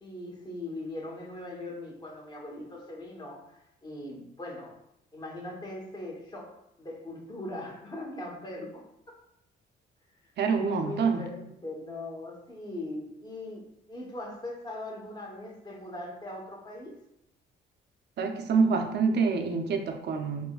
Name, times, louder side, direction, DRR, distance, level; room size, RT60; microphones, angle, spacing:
voice 1, 0.0-4.8 5.1-8.9 10.5-16.9, left 1 dB, 20° left, -2 dB, 0.9 m, -40 dB
voice 2, 10.4-11.3 18.2-20.5, right 5 dB, 60° right, 5 dB, 0.5 m, -26 dB
4.7 x 2.1 x 2.3 m, 0.79 s
cardioid pair, 90°, 20 cm